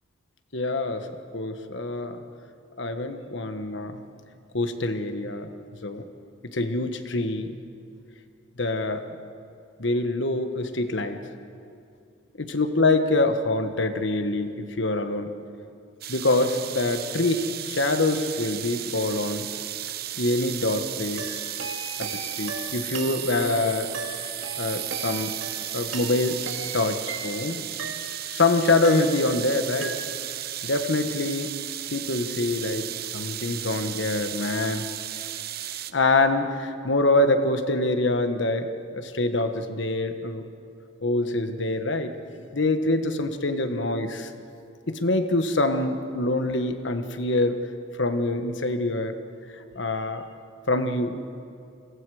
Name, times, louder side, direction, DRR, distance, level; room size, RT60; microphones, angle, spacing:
voice 1, 0.5-1.1 1.3-2.2 2.8-4.0 4.5-5.5 5.8-6.0 6.5-7.5 8.6-9.0 9.8-11.2 12.4-15.3 16.1-19.5 20.2-21.4 22.0-23.9 24.6-25.3 25.7-26.4 26.7-27.6 28.2-30.0 30.6-31.5 31.9-34.9 35.9-40.4 41.0-42.1 42.5-44.3 44.9-47.6 48.0-49.1 49.7-50.3 50.7-51.2, left 2 dB, 65° left, 8 dB, 1.3 m, -25 dB
sound 1, 16.0-35.9, right 12 dB, 50° right, 0.8 m, -34 dB
sound 2, 21.2-28.4 28.8-29.5 29.8-30.4, right 3 dB, 85° right, 2.1 m, -38 dB
29.5 x 22.5 x 4.9 m, 2.5 s
head